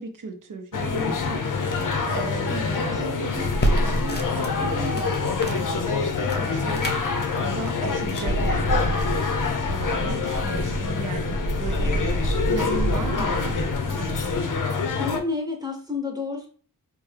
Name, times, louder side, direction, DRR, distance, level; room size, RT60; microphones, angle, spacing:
voice 1, 0.0-3.5 3.8-5.2 5.4-9.3 9.7-13.6 13.9-14.5, right 4 dB, 60° right, 7 dB, 0.7 m, -36 dB
sound 1, 0.7-15.2, left 4 dB, 60° left, 0.6 m, -26 dB
voice 2, 2.5-3.0 15.0-16.5, left 4 dB, 10° right, 1 dB, 0.9 m, -30 dB
sound 2, 3.4-8.9, right 1 dB, 30° left, 0.8 m, -30 dB
sound 3, 8.3-14.4, right 1 dB, 80° right, 1.1 m, -29 dB
4.4 x 2.2 x 3.2 m, 0.43 s
wide cardioid pair, 105°, 36 cm